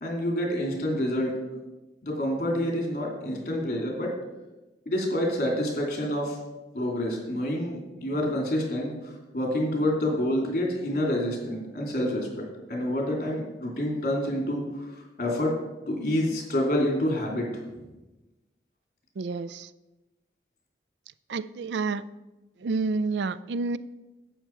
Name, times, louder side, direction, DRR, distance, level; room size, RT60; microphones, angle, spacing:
voice 1, 0.0-1.3 2.0-4.1 4.9-6.4 6.7-12.4 12.7-14.6 15.2-15.5 15.9-17.6, left 1 dB, 45° left, 0 dB, 2.7 m, -27 dB
voice 2, 19.2-19.7 21.3-22.0 22.6-23.8, right 4 dB, 85° right, 16 dB, 0.4 m, -29 dB
11.5 x 8.0 x 4.5 m, 1.1 s
head